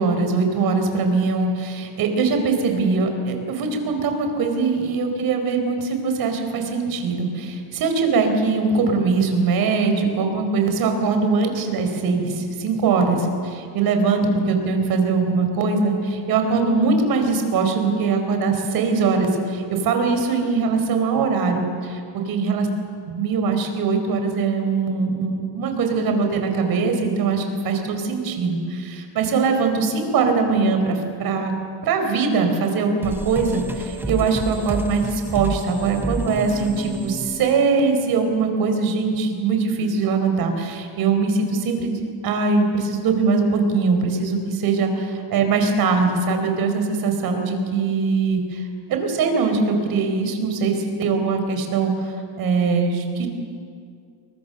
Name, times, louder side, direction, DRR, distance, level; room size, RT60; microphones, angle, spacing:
voice 1, 0.0-7.3 7.8-21.6 22.3-22.7 23.0-31.5 31.8-53.3, right 4 dB, 50° right, 5 dB, 4.3 m, -21 dB
sound 1, 33.0-38.3, right 2 dB, 5° right, 0.6 m, -31 dB
29.5 x 23.0 x 6.7 m, 2.2 s
cardioid pair, 175°, 45 cm